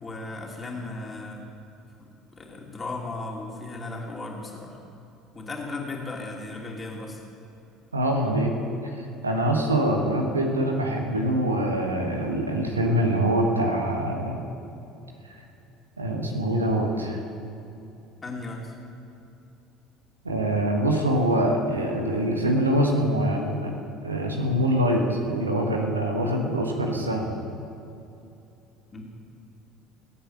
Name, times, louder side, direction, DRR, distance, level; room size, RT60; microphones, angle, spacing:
voice 1, 0.0-1.4 2.0-2.1 2.4-4.8 5.3-7.2 18.2-18.7 28.9-29.0, left 2 dB, 25° left, -1 dB, 3.0 m, -36 dB
voice 2, 7.9-8.5 9.2-14.5 16.0-17.2 20.2-23.7 24.0-27.3, right 1 dB, 85° right, 2 dB, 1.3 m, -24 dB
21.0 x 8.6 x 6.0 m, 2.8 s
figure-of-eight pair, 65°, 0 cm